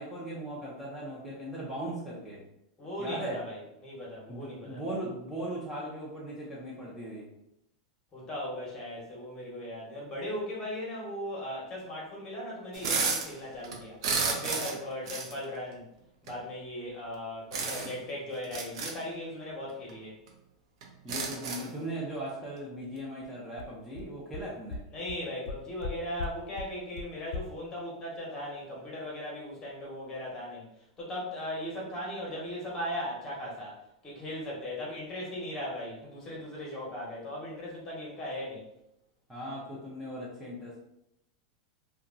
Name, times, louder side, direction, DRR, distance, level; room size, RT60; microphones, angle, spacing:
voice 1, 0.0-2.4 3.0-3.4 4.3-7.3 21.0-24.8 39.3-40.8, right 1 dB, 5° right, -7 dB, 0.6 m, -38 dB
voice 2, 2.8-4.8 8.1-14.0 14.2-15.8 16.2-20.1 24.9-30.7 31.0-38.6, left 1 dB, 25° left, -4 dB, 1.1 m, -38 dB
sound 1, 12.7-13.3 13.6-14.8 15.1-15.3 16.3-16.4 17.5-18.0 18.4-18.9 19.9-20.0 20.3-20.4 20.8-21.7, right 4 dB, 70° right, 0.5 m, -31 dB
sound 2, 23.2-23.3 23.6-23.7 24.0-24.1 24.3-24.4 24.7-24.8 25.1-25.2 25.4-25.9 26.2-26.3 26.6-26.7 27.0-27.1 27.3-27.4, left 4 dB, 65° left, 0.4 m, -36 dB
2.7 x 2.3 x 2.5 m, 0.82 s
hypercardioid pair, 125°, 3 cm